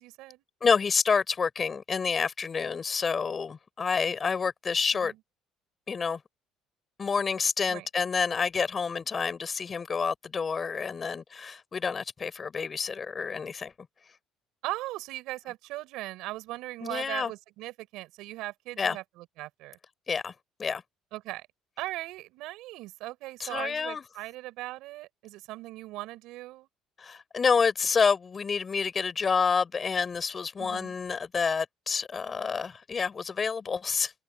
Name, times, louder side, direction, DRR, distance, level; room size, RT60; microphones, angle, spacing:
voice 1, 0.0-0.4 4.9-5.2 7.7-7.9 14.6-19.8 21.1-21.5 21.8-26.7 30.6-30.9, right 18 dB, 80° right, 5.0 m, -39 dB
voice 2, 0.6-5.1 5.9-6.2 7.0-13.7 16.8-17.3 18.8-19.0 20.1-20.3 20.6-20.8 23.4-24.0 27.0-34.1, left 5 dB, 30° left, 5.1 m, -28 dB
cardioid pair, 100°, 0 cm